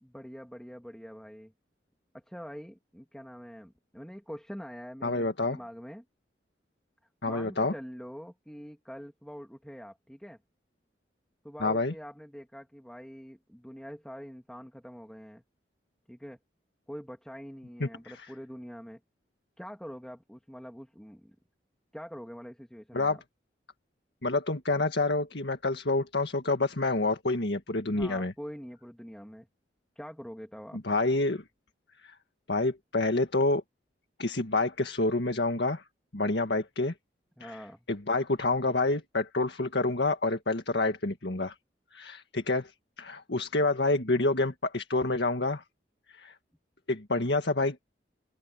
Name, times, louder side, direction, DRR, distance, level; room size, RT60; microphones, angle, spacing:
voice 1, 0.0-1.5 2.1-6.0 7.2-10.4 11.4-15.4 16.1-16.4 16.9-19.0 19.6-21.3 21.9-23.2 27.8-29.5 30.0-30.8 37.4-37.9, equal, 5° left, 2.7 m, -44 dB
voice 2, 5.0-5.6 7.2-7.7 11.6-11.9 17.8-17.9 18.2-18.3 22.9-23.2 24.2-28.3 30.8-31.4 32.0-32.1 32.5-33.6 34.2-35.8 36.1-36.9 37.4-37.6 37.9-41.5 41.9-42.7 43.0-45.6 46.1-46.3 46.9-47.8, left 2 dB, 75° left, 1.8 m, -28 dB
open air
head